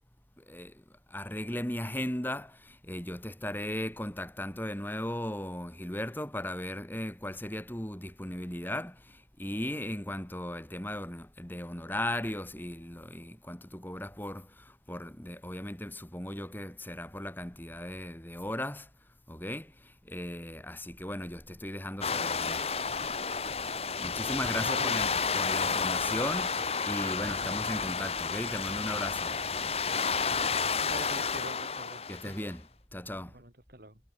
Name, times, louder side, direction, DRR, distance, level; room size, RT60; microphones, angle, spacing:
voice 1, 0.4-0.8 1.1-18.9 19.3-22.8 23.8-29.4 32.1-33.4, left 1 dB, 10° left, 2.2 m, -37 dB
sound 1, 22.0-32.5, left 5 dB, 35° left, 2.3 m, -31 dB
voice 2, 24.6-25.0 30.8-32.4 33.3-34.0, right 1 dB, 55° right, 6.8 m, -44 dB
head